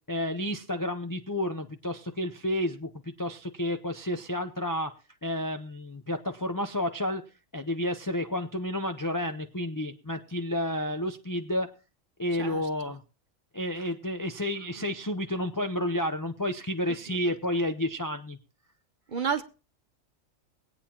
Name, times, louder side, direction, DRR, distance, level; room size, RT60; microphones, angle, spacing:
voice 1, 0.1-4.9 5.2-7.2 7.5-11.7 12.2-13.0 13.5-18.4, left 1 dB, 35° left, 6 dB, 0.3 m, -31 dB
voice 2, 19.1-19.4, right 6 dB, 45° right, 9 dB, 0.8 m, -30 dB
22.5 x 8.8 x 2.9 m, 0.34 s
omnidirectional pair, 1.4 m